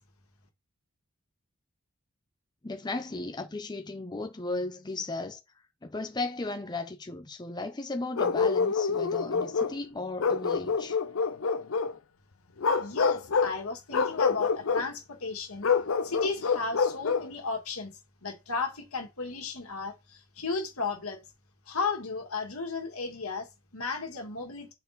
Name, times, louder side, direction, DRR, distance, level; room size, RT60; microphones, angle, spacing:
voice 1, 2.6-5.4 5.8-11.0, left 2 dB, 20° left, 0.6 m, -35 dB
Bark, 8.2-9.8 10.2-11.9 12.6-13.6 13.9-14.9 15.6-17.3, left 5 dB, 70° left, 0.6 m, -27 dB
voice 2, 12.8-15.7 16.0-21.2 21.7-24.7, left 4 dB, 90° left, 1.9 m, -34 dB
5.6 x 4.3 x 4.0 m
head